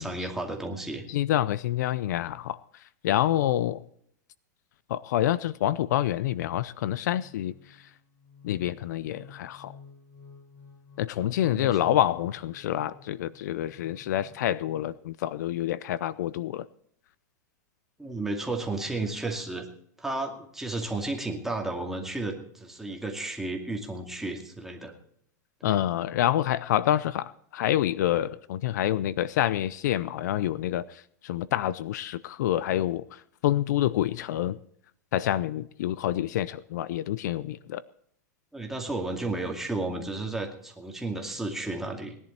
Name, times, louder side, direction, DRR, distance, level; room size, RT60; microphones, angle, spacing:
voice 1, 0.0-1.0 11.2-12.0 18.0-19.7 20.0-24.9 25.6-25.8 38.5-42.2, right 2 dB, 5° right, 2.3 m, -33 dB
voice 2, 1.1-2.6 3.0-3.8 4.9-7.5 8.4-9.7 11.0-16.6 25.6-30.8 31.2-33.0 33.4-34.6 35.1-37.8, left 12 dB, 70° left, 0.6 m, -27 dB
sound 1, 7.0-14.9, left 4 dB, 40° left, 6.5 m, -53 dB
19.5 x 11.0 x 4.3 m
supercardioid pair, 135°, 10 cm